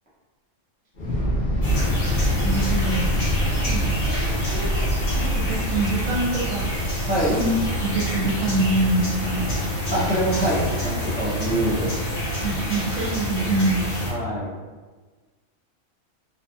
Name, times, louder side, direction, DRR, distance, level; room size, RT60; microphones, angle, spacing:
Thunder / Explosion, 0.9-9.2, equal, 50° left, 1.0 m, -26 dB
sound 1, 1.6-14.1, equal, 80° left, 1.6 m, -27 dB
voice 1, 2.4-3.2 3.4-6.7 7.4-7.5 7.8-9.5 12.4-13.9, right 2 dB, 75° right, -2 dB, 1.0 m, -26 dB
voice 2, 7.1-7.4 9.9-11.9 14.1-14.5, right 1 dB, 10° left, -9 dB, 0.4 m, -24 dB
3.1 x 2.3 x 2.6 m, 1.3 s
omnidirectional pair, 1.4 m